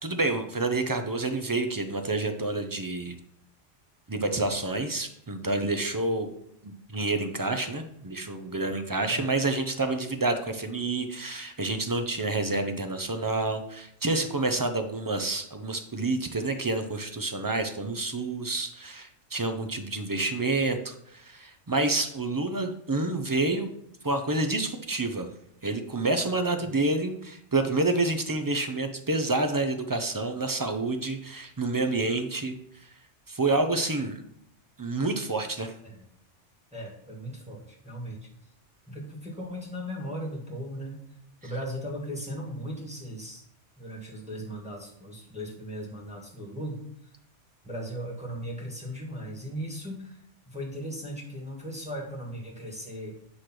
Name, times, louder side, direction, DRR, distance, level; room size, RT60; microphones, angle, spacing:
voice 1, 0.0-3.2 4.1-6.3 6.6-23.7 24.0-25.3 25.6-32.6 33.3-34.2 34.8-35.7 41.4-41.5, right 2 dB, 30° right, 6 dB, 0.3 m, -28 dB
voice 2, 36.7-38.3 38.9-41.0 41.4-43.4 43.8-46.8 47.6-50.2 50.5-53.1, equal, 5° right, -3 dB, 1.5 m, -37 dB
8.3 x 3.2 x 5.9 m, 0.72 s
omnidirectional pair, 1.2 m